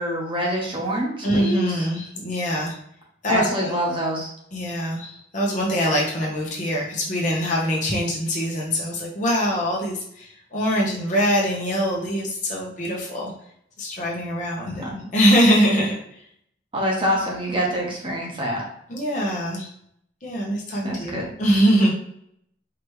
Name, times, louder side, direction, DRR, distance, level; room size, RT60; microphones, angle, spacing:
voice 1, 0.0-1.9 3.3-4.3 14.6-14.9 16.7-18.6 20.8-21.3, equal, 30° right, -2 dB, 1.2 m, -25 dB
voice 2, 1.2-2.8 3.2-3.7 4.5-13.3 13.8-15.9 18.9-19.7 20.2-21.9, equal, 40° left, -3 dB, 1.2 m, -23 dB
5.0 x 3.2 x 3.3 m, 0.70 s
head